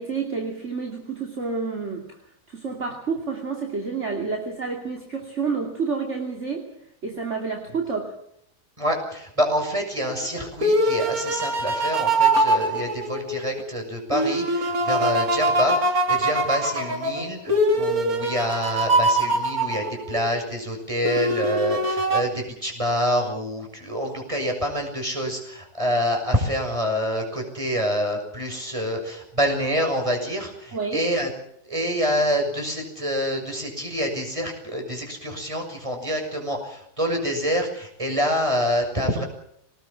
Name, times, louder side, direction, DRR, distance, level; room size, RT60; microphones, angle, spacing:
voice 1, 0.0-2.2 2.5-6.7 7.0-8.1 30.7-31.1, right 5 dB, 45° right, 1 dB, 3.1 m, -29 dB
voice 2, 8.8-31.3 31.6-39.2, equal, 20° right, 3 dB, 6.7 m, -26 dB
sound 1, 10.1-13.6 14.1-20.3 21.0-22.2, right 1 dB, 60° right, 3.6 m, -23 dB
23.5 x 19.5 x 7.4 m, 0.72 s
omnidirectional pair, 1.7 m